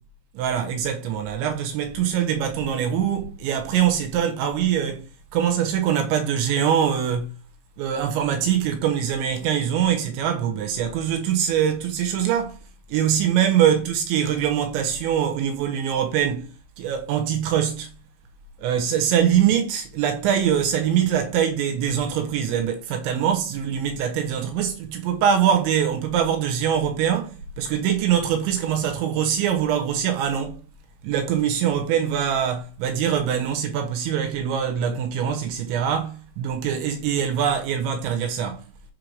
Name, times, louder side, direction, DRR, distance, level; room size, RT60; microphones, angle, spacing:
voice 1, 0.3-5.0 5.3-7.3 7.8-12.6 12.9-16.5 16.8-17.9 18.6-30.6 31.0-38.6, right 9 dB, 75° right, 3.1 m, -23 dB
6.9 x 4.8 x 5.1 m
omnidirectional pair, 5.8 m